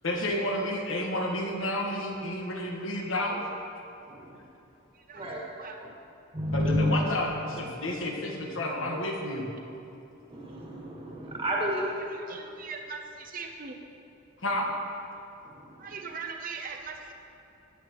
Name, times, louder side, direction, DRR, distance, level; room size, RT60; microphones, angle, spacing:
voice 1, 0.0-3.4 6.5-9.5 14.4-14.7, left 1 dB, 75° left, 1 dB, 1.4 m, -30 dB
voice 2, 4.1-4.4 5.1-5.4 5.8-5.9 6.3-6.9 10.3-12.0 15.4-15.7, equal, 25° right, -3 dB, 1.7 m, -30 dB
voice 3, 4.9-5.8 12.0-13.8 15.8-17.1, right 5 dB, 45° right, 3 dB, 0.7 m, -40 dB
14.0 x 9.9 x 3.0 m, 2.9 s
head